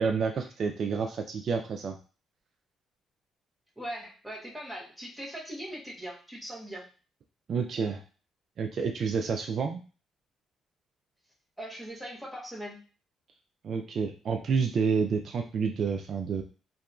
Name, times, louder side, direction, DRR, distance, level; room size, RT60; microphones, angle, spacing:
voice 1, 0.0-2.0 7.5-8.0 8.6-9.8 13.6-16.4, right 5 dB, 60° right, 4 dB, 0.3 m, -29 dB
voice 2, 3.8-6.9 11.6-12.8, equal, 5° right, -4 dB, 1.1 m, -40 dB
2.7 x 2.3 x 2.5 m, 0.35 s
cardioid pair, 90°, 0 cm